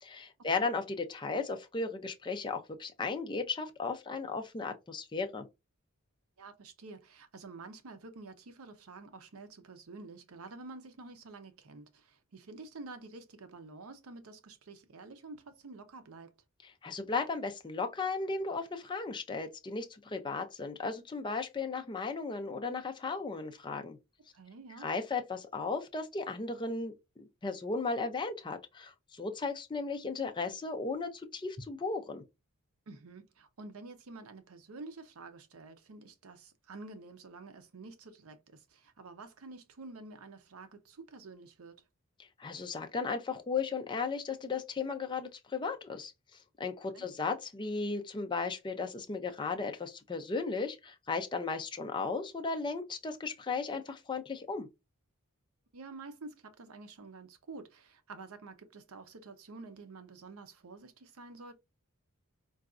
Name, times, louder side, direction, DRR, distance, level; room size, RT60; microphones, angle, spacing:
voice 1, 0.0-5.5 16.6-24.0 24.8-26.9 27.4-32.2 42.4-46.1 46.6-54.7, left 4 dB, 20° left, 0.4 m, -35 dB
voice 2, 6.4-16.3 24.3-24.9 32.9-41.8 46.9-47.1 55.7-61.5, right 3 dB, 70° right, 0.6 m, -49 dB
3.9 x 2.3 x 2.4 m
head